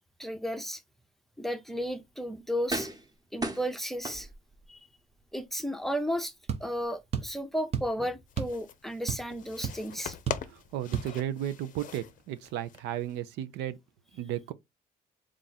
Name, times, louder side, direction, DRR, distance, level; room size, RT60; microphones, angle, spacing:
voice 1, 0.2-0.8 1.4-2.9 3.3-4.3 4.7-4.8 5.3-6.3 6.6-10.2, equal, ahead, 0.6 m, -33 dB
sound 1, 1.8-1.9 2.7-3.1 3.4-4.7 5.2-5.3, right 1 dB, 20° right, 1.0 m, -35 dB
sound 2, 6.5-6.7 7.1-7.4 7.7-8.0 8.4-8.6 8.9-9.4 9.6-9.8 10.3-10.5 10.9-11.1, right 8 dB, 35° right, 0.7 m, -32 dB
sound 3, 8.3-13.2, left 9 dB, 50° left, 0.6 m, -43 dB
voice 2, 10.5-13.8 14.2-14.5, right 11 dB, 85° right, 0.6 m, -34 dB
3.6 x 2.5 x 4.1 m
cardioid pair, 110°, 17 cm